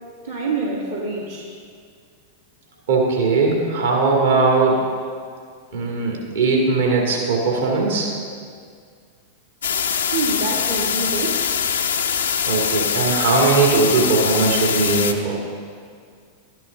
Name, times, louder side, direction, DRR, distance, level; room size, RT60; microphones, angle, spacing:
voice 1, 0.2-1.5 10.1-11.4, right 3 dB, 85° right, -6 dB, 1.8 m, -26 dB
voice 2, 2.9-4.9 5.7-8.1 12.5-15.4, right 3 dB, 70° right, -1 dB, 2.1 m, -19 dB
sound 1, 9.6-15.1, left 7 dB, 75° left, 0.6 m, -23 dB
12.0 x 10.5 x 3.8 m, 2.1 s
figure-of-eight pair, 95°, 0 cm